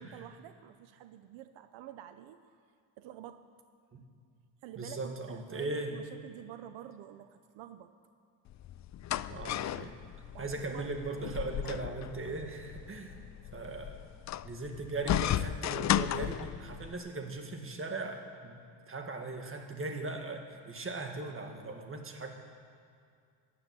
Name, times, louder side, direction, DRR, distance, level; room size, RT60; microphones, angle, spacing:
voice 1, 0.0-2.6 3.0-3.4 4.6-7.9 10.3-10.9 13.2-13.3, right 11 dB, 80° right, 10 dB, 0.7 m, -48 dB
voice 2, 4.8-6.0 9.3-9.9 10.4-13.1 13.5-14.0 14.4-18.6 18.9-22.3, right 3 dB, 30° right, 4 dB, 1.9 m, -39 dB
sound 1, 8.5-16.9, left 12 dB, 40° left, 0.4 m, -35 dB
13.0 x 10.0 x 7.7 m, 2.3 s
cardioid pair, 90°, 44 cm